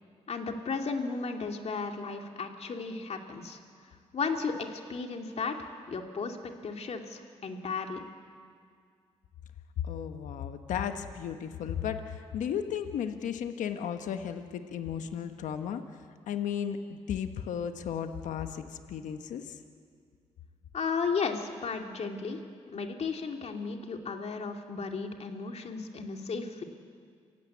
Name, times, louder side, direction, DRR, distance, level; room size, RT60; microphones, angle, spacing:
voice 1, 0.3-3.6 4.1-5.5 5.9-8.0 20.7-22.4 22.7-26.6, left 4 dB, 55° left, 4 dB, 2.5 m, -34 dB
voice 2, 9.8-15.8 16.3-19.6, left 8 dB, 80° left, 7 dB, 1.2 m, -35 dB
27.5 x 16.5 x 8.5 m, 2.1 s
supercardioid pair, 60°, 13 cm